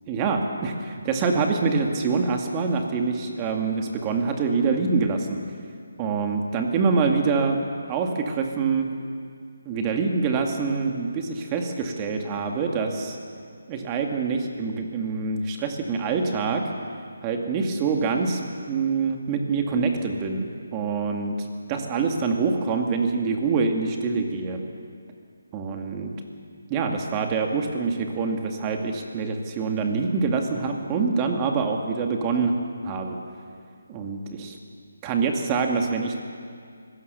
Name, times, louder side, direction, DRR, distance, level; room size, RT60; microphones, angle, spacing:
voice 1, 0.1-5.4 6.0-7.6 7.9-8.9 9.7-13.2 13.7-16.6 17.2-21.3 21.7-24.6 25.5-26.1 26.7-32.5 32.8-33.2 33.9-34.6 35.0-36.2, right 4 dB, 20° right, 3 dB, 2.1 m, -25 dB
24.5 x 17.0 x 6.8 m, 2.3 s
figure-of-eight pair, 160°, 0 cm